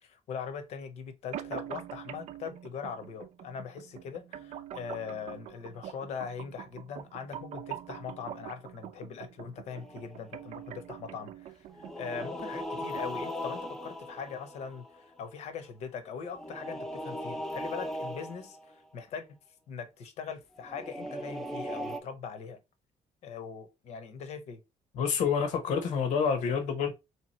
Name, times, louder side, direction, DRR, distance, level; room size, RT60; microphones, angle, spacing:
voice 1, 0.0-19.3 19.7-22.6 23.2-24.6, left 6 dB, 65° left, 0.8 m, -41 dB
sound 1, 1.3-13.3, right 10 dB, 70° right, 0.5 m, -44 dB
sound 2, 9.7-10.5 11.7-15.3 16.3-18.7 20.6-22.0, equal, 5° left, 0.6 m, -38 dB
voice 2, 24.9-26.9, left 6 dB, 90° left, 1.0 m, -28 dB
3.5 x 2.9 x 4.1 m
cardioid pair, 145°, 12 cm